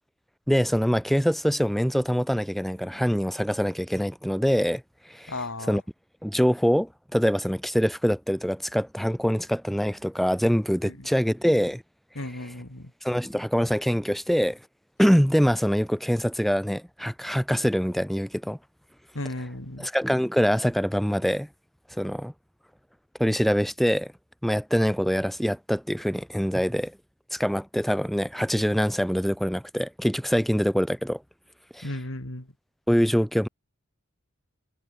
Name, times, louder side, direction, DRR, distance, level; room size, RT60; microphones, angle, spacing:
voice 1, 0.5-4.8 5.1-5.3 5.7-5.8 6.2-11.8 13.0-14.6 15.0-18.6 19.8-21.5 21.9-22.3 23.2-24.1 24.4-27.0 27.3-31.2 31.7-31.9 32.9-33.5, equal, ahead, 1.5 m, -24 dB
voice 2, 5.3-5.8 10.8-11.1 12.1-12.9 19.1-19.9 31.8-32.5, left 1 dB, 70° left, 3.3 m, -35 dB
head